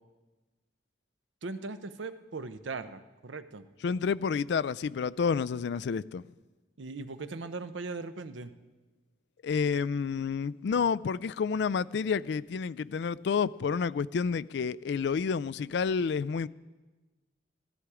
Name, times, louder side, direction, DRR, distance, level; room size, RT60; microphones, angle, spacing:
voice 1, 1.4-3.7 6.8-8.5, right 3 dB, 85° right, 0.7 m, -39 dB
voice 2, 3.8-6.2 9.4-16.5, left 6 dB, 65° left, 0.3 m, -29 dB
16.0 x 13.5 x 4.9 m
head